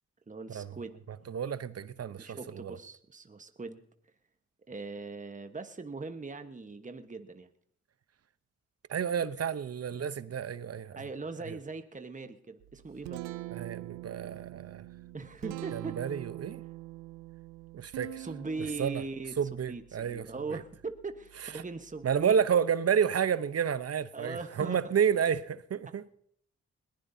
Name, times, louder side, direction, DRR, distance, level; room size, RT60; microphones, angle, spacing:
voice 1, 0.3-1.0 2.2-3.8 4.7-7.5 10.9-13.2 15.1-16.0 18.2-22.3 24.1-24.9, right 3 dB, 25° right, 1.2 m, -40 dB
voice 2, 1.3-2.8 8.9-11.0 11.5-11.6 13.5-14.9 15.7-16.6 17.7-18.3 18.8-19.0 19.4-20.6 22.0-26.0, right 7 dB, 50° right, 0.8 m, -30 dB
Guitar, 12.6-22.4, right 18 dB, 85° right, 0.5 m, -45 dB
21.0 x 15.5 x 2.8 m
hypercardioid pair, 40°, 32 cm